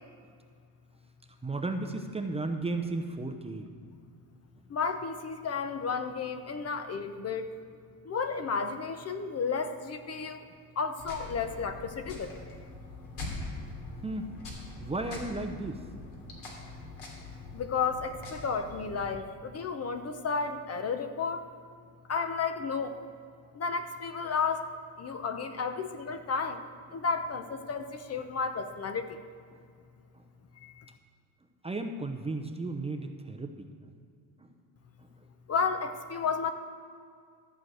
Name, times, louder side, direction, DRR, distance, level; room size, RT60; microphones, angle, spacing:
voice 1, 1.4-3.7 10.2-10.3 14.0-14.3 14.8-15.8 31.6-33.7 34.4-34.5, right 2 dB, 15° right, 5 dB, 0.7 m, -34 dB
voice 2, 4.7-7.5 8.1-10.4 10.8-12.4 17.5-21.4 22.1-22.9 23.6-24.6 25.0-26.6 26.9-29.0 30.6-30.7 35.5-36.5, left 5 dB, 35° left, 8 dB, 0.8 m, -32 dB
sound 1, 11.0-19.1, left 2 dB, 70° left, 3.0 m, -43 dB
14.0 x 4.7 x 7.9 m, 2.2 s
cardioid pair, 100°, 42 cm